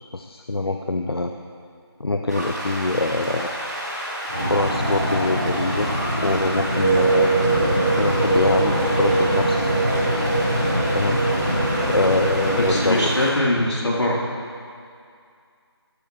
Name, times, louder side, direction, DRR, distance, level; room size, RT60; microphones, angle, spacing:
voice 1, 0.1-1.3 2.0-3.5 4.4-5.9 6.2-7.4 8.0-9.6 10.9-11.2 11.8-13.2, left 2 dB, 60° left, 4 dB, 0.6 m, -24 dB
sound 1, 2.3-13.3, equal, 40° right, 3.3 m, -31 dB
sound 2, 4.3-13.3, right 2 dB, 5° left, 0.9 m, -22 dB
voice 2, 12.5-14.2, left 1 dB, 80° left, -5 dB, 3.6 m, -22 dB
14.5 x 13.0 x 3.2 m, 2.3 s
figure-of-eight pair, 175°, 14 cm